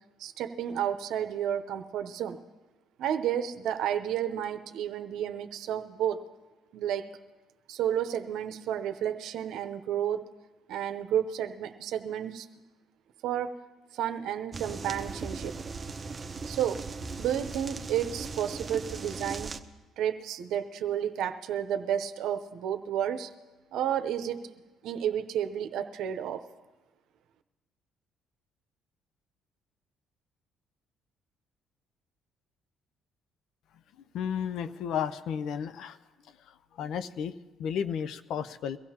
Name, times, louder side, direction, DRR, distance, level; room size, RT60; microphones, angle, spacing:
voice 1, 0.2-2.4 3.0-6.2 6.7-7.1 7.7-10.2 10.7-12.5 13.2-13.5 13.9-15.5 16.4-16.8 17.2-19.5 20.0-23.3 23.7-24.4 24.8-26.4, right 10 dB, 75° right, 8 dB, 0.8 m, -31 dB
sound 1, 14.5-19.6, right 4 dB, 30° right, 0.8 m, -38 dB
voice 2, 34.1-36.0 36.4-38.8, left 8 dB, 70° left, 13 dB, 0.5 m, -33 dB
23.0 x 16.0 x 2.9 m, 1.2 s
supercardioid pair, 70°, 0 cm